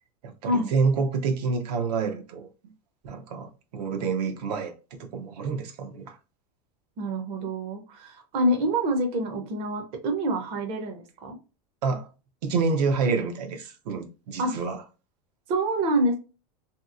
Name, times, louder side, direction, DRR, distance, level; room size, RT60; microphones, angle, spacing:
voice 1, 0.2-2.5 3.0-6.2 11.8-12.1 12.4-14.8, right 4 dB, 80° right, 0.7 m, -28 dB
voice 2, 7.0-11.4 14.4-14.5 15.5-16.2, right 1 dB, 30° right, 0.5 m, -26 dB
2.8 x 2.6 x 2.4 m
supercardioid pair, 165°, 21 cm